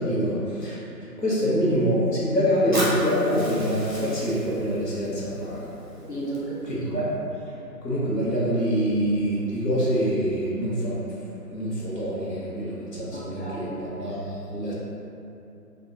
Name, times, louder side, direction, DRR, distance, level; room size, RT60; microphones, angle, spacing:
voice 1, 0.0-5.7 6.6-7.2 7.8-11.0 11.4-14.7, equal, 75° left, -7 dB, 0.9 m, -25 dB
Fire, 2.7-6.7, equal, 40° right, 0.5 m, -35 dB
voice 2, 5.9-6.8 13.1-13.7, right 2 dB, 45° left, -9 dB, 0.6 m, -34 dB
2.4 x 2.1 x 2.7 m, 2.7 s
figure-of-eight pair, 160°, 49 cm